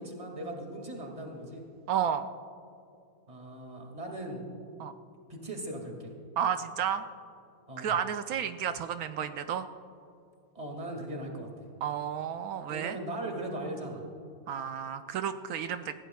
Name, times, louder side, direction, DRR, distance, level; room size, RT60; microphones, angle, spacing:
voice 1, 0.0-1.6 3.3-4.5 5.3-6.1 7.7-7.9 10.6-11.7 12.6-14.0, right 1 dB, 25° right, 1 dB, 2.1 m, -39 dB
voice 2, 1.9-2.3 4.8-4.9 6.4-7.0 7.8-9.7 11.8-13.0 14.5-15.9, right 8 dB, 75° right, 9 dB, 1.0 m, -31 dB
21.0 x 16.0 x 2.3 m, 2.6 s
omnidirectional pair, 1.6 m